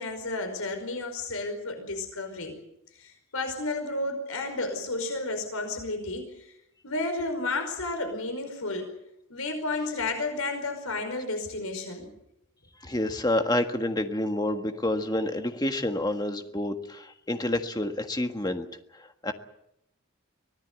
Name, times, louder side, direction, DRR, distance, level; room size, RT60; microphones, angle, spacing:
voice 1, 0.0-2.5 3.0-6.5 6.8-8.9 9.3-12.1, left 2 dB, 75° left, 6 dB, 5.1 m, -32 dB
voice 2, 12.8-18.7 18.9-19.3, left 1 dB, 20° left, 6 dB, 1.5 m, -28 dB
24.5 x 18.0 x 8.2 m, 0.80 s
head